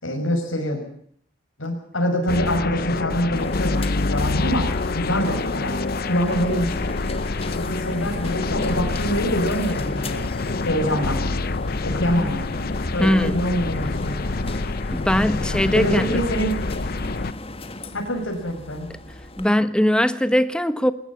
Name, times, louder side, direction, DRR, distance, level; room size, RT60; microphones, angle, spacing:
voice 1, 0.0-0.8 1.6-5.7 6.1-6.8 7.6-10.2 10.6-11.2 11.8-12.6 12.9-14.2 15.7-16.6 17.9-18.9, equal, 85° left, 6.0 m, -25 dB
sound 1, 2.3-17.3, left 3 dB, 50° left, 0.8 m, -26 dB
sound 2, 3.4-19.5, left 2 dB, 30° left, 1.7 m, -36 dB
voice 2, 13.0-13.4 14.9-16.2 19.4-20.9, equal, 5° left, 1.2 m, -20 dB
20.5 x 20.0 x 7.3 m
head